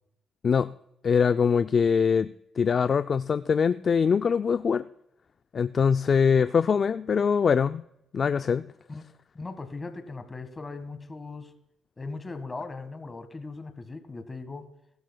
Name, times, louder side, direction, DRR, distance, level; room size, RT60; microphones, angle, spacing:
voice 1, 1.0-4.9 5.5-7.8 8.1-8.7, left 6 dB, 45° left, 11 dB, 0.3 m, -23 dB
voice 2, 9.3-11.5 12.0-14.7, left 3 dB, 25° left, 9 dB, 1.6 m, -38 dB
21.0 x 12.5 x 2.3 m, 0.81 s
cardioid pair, 90°, 0 cm